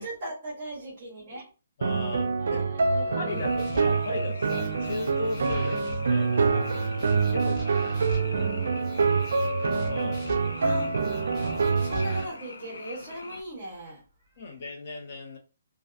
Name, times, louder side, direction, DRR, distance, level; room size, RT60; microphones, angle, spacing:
voice 1, 0.0-1.5 2.4-3.8 6.7-6.9 7.4-7.6 9.1-9.2 10.6-11.0 11.8-14.0, right 1 dB, 25° right, 0.9 m, -39 dB
voice 2, 1.8-2.6 3.2-6.7 7.3-7.9 9.9-10.2 14.4-15.4, left 2 dB, 40° left, 0.6 m, -36 dB
sound 1, 1.8-12.2, right 4 dB, 65° right, 0.3 m, -26 dB
Frog, 3.3-13.4, left 3 dB, 85° left, 0.4 m, -44 dB
sound 2, 3.6-4.1 4.4-6.3 6.6-8.4 8.8-10.6 11.0-12.3, left 3 dB, 15° left, 0.9 m, -45 dB
2.5 x 2.2 x 2.4 m
hypercardioid pair, 175°, 0 cm